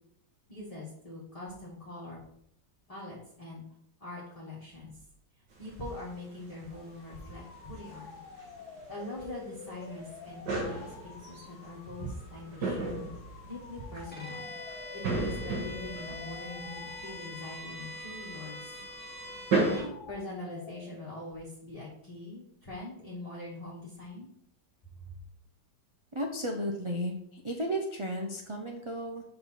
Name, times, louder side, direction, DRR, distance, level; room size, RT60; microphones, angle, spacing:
voice 1, 0.5-2.2 2.9-3.7 4.0-5.0 5.6-8.2 8.9-13.1 13.4-14.5 14.9-18.8 19.5-24.3, left 1 dB, 20° left, -6 dB, 1.4 m, -43 dB
sound 1, 5.5-19.9, right 3 dB, 90° right, 2.0 m, -37 dB
sound 2, 6.7-21.4, left 6 dB, 70° left, 1.2 m, -50 dB
Bowed string instrument, 14.1-19.9, left 1 dB, 5° left, 1.1 m, -43 dB
voice 2, 26.1-29.2, equal, 45° right, 1 dB, 0.4 m, -34 dB
5.6 x 4.5 x 5.6 m, 0.73 s
omnidirectional pair, 1.8 m